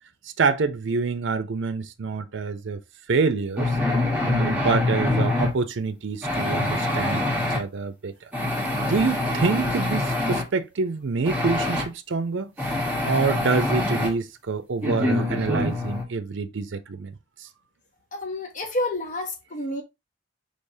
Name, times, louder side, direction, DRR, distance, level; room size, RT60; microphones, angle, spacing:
voice 1, 0.4-2.8 3.1-3.8 4.2-8.3 8.9-12.5 13.0-17.1, right 4 dB, 65° right, 0.5 m, -26 dB
sound 1, 3.6-5.5 6.2-7.6 8.3-10.4 11.2-11.8 12.6-14.1 14.8-16.0, left 2 dB, 10° right, 1.5 m, -25 dB
voice 2, 18.1-19.8, left 1 dB, 40° left, 0.8 m, -29 dB
5.3 x 3.4 x 2.7 m
head